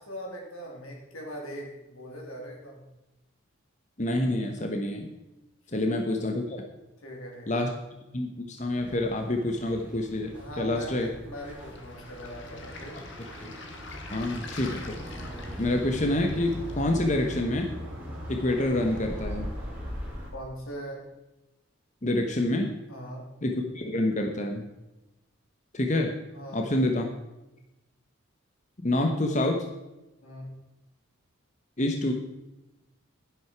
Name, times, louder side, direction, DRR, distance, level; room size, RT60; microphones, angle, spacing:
voice 1, 0.0-2.9 5.7-5.8 7.0-7.8 10.3-13.0 20.3-21.1 22.9-23.2 26.3-26.7 30.2-30.5, equal, 90° left, 0 dB, 3.5 m, -41 dB
voice 2, 4.0-5.1 5.7-6.6 7.5-7.7 8.1-11.1 13.4-13.5 14.1-15.0 15.6-17.7 18.3-19.5 22.0-22.7 23.4-24.6 25.7-26.1 26.5-27.0 28.8-29.7 31.8-32.1, left 1 dB, 35° left, 3 dB, 1.1 m, -27 dB
sound 1, 8.7-20.3, equal, 5° right, 3.3 m, -40 dB
Waves surf, 11.4-17.3, left 3 dB, 60° left, 1.8 m, -46 dB
11.5 x 11.0 x 4.7 m, 0.99 s
head